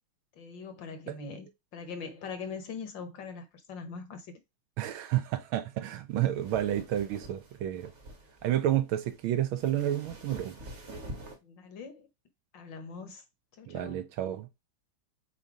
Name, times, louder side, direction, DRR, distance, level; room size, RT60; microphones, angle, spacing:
voice 1, 0.3-4.4 11.4-12.1 12.5-13.2 13.6-14.1, left 5 dB, 60° left, 1.8 m, -42 dB
voice 2, 4.8-7.9 8.4-10.6 13.7-14.5, right 12 dB, 75° right, 1.4 m, -30 dB
sound 1, 6.1-11.4, right 1 dB, 35° right, 1.4 m, -47 dB
7.7 x 2.8 x 4.8 m
omnidirectional pair, 2.4 m